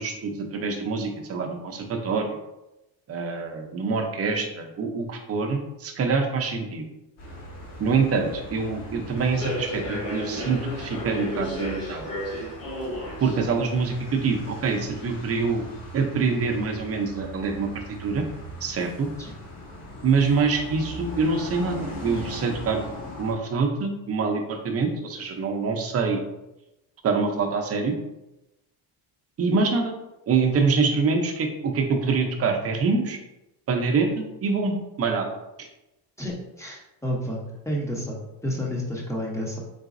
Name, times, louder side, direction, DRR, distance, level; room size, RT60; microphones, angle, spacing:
voice 1, 0.0-2.4 3.1-6.9 7.8-12.0 13.2-15.6 15.9-18.3 18.6-19.1 20.0-22.9 23.2-26.2 27.0-28.0 29.4-29.9 30.3-33.2 33.7-35.3 35.6-35.7, right 4 dB, 30° right, 3 dB, 0.6 m, -25 dB
sound 1, 7.2-23.3, equal, 65° left, 1.5 m, -40 dB
Human voice / Subway metro underground, 9.2-14.7, equal, 45° left, 1.3 m, -34 dB
voice 2, 36.2-37.4 37.7-39.6, equal, 5° left, -2 dB, 0.7 m, -30 dB
4.0 x 3.7 x 2.5 m, 0.95 s
cardioid pair, 135°, 46 cm